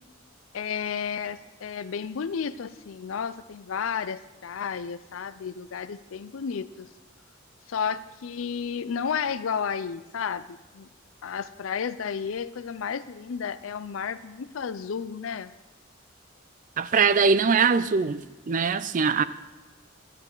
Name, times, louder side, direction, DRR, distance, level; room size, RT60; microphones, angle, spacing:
voice 1, 0.5-6.9 7.7-10.9 11.2-15.5, left 6 dB, 75° left, 0.5 m, -32 dB
voice 2, 16.8-18.2 18.5-19.2, right 5 dB, 40° right, 0.4 m, -22 dB
11.5 x 10.5 x 3.9 m
head